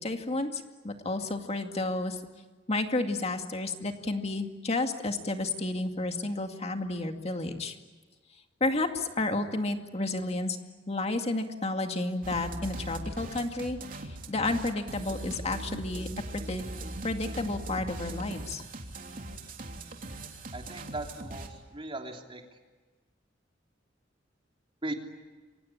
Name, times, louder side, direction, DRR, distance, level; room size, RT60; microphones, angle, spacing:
voice 1, 0.0-2.2 2.7-7.7 8.6-10.6 10.9-13.8 14.3-16.1 16.3-16.6 17.0-18.6, left 2 dB, 35° left, 5 dB, 2.3 m, -31 dB
sound 1, 12.2-21.5, right 1 dB, 45° right, 3.2 m, -40 dB
voice 2, 20.5-22.4 24.8-24.9, right 2 dB, 30° right, 2 dB, 3.2 m, -38 dB
27.5 x 24.0 x 8.7 m, 1.3 s
head